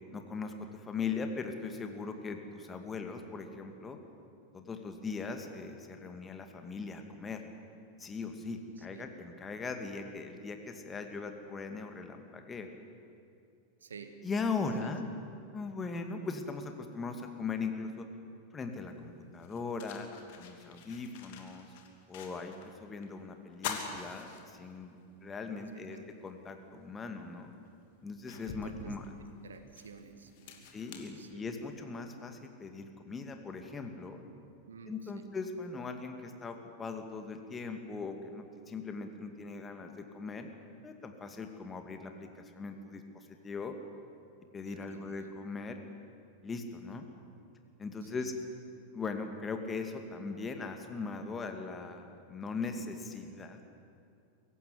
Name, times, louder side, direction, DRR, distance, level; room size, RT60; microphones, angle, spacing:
voice 1, 0.1-4.0 4.5-7.4 8.0-12.7 14.2-15.0 15.5-18.1 18.5-20.1 20.4-21.7 22.1-26.0 26.2-27.5 28.0-29.0 30.7-34.2 34.9-40.5 40.8-43.7 44.5-45.8 46.4-47.1 47.8-48.3 48.9-53.6, left 4 dB, 20° left, 5 dB, 2.3 m, -39 dB
voice 2, 8.7-9.1 13.8-14.2 14.8-14.9 16.2-16.3 22.2-22.4 25.5-26.1 28.3-29.0 29.4-30.7 31.1-31.5 34.7-35.3 44.7-45.2 48.0-48.3, right 5 dB, 70° right, 8 dB, 1.8 m, -51 dB
sound 1, 18.7-18.8 19.3-22.7 23.0-23.1 23.5-25.0 25.5-25.6 27.0-27.1 27.7-31.9, left 7 dB, 50° left, 2.8 m, -45 dB
23.5 x 15.5 x 9.8 m, 2.5 s
figure-of-eight pair, 90°, 0 cm